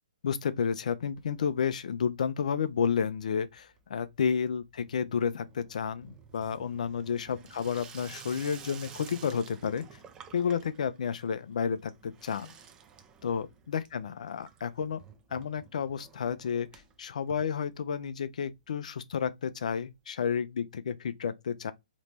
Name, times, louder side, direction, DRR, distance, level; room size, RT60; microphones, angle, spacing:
voice 1, 0.2-9.8 10.3-12.5 13.2-15.0 15.3-16.7 17.0-21.7, left 7 dB, 60° left, 0.5 m, -31 dB
Water tap faucet / Sink (filling or washing), 1.0-1.8 2.0-2.6 2.9-18.2 18.5-18.6 18.8-18.9 19.1-19.2 20.2-20.3, right 6 dB, 15° right, 0.6 m, -52 dB
4.0 x 3.0 x 3.2 m
figure-of-eight pair, 130°, 4 cm